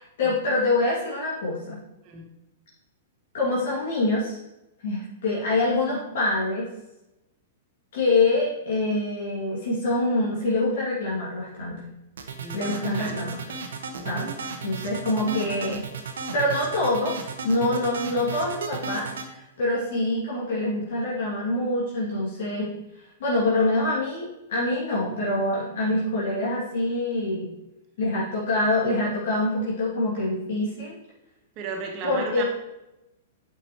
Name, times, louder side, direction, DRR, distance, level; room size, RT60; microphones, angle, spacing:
voice 1, 0.0-1.8 3.3-4.4 4.8-6.7 7.9-11.8 12.5-13.4 14.1-14.2 14.6-15.8 16.3-22.7 23.2-27.5 28.0-30.9 32.0-32.4, left 2 dB, 55° left, -7 dB, 2.4 m, -25 dB
sound 1, 12.2-19.3, right 5 dB, 65° right, 0.9 m, -34 dB
voice 2, 12.4-13.3 13.9-14.3 27.3-27.5 31.6-32.4, right 4 dB, 40° right, 1 dB, 1.6 m, -36 dB
8.8 x 6.2 x 3.1 m, 0.94 s
figure-of-eight pair, 105°, 0 cm